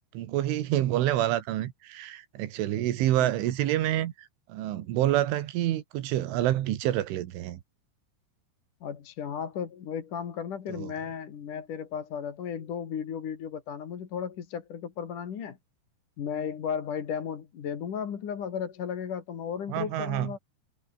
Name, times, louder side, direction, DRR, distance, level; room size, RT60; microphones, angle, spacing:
voice 1, 0.1-7.6 10.7-10.9 19.7-20.3, right 13 dB, 80° right, 4.1 m, -28 dB
voice 2, 8.8-15.6 16.2-20.4, left 7 dB, 50° left, 3.4 m, -35 dB
omnidirectional pair, 5.5 m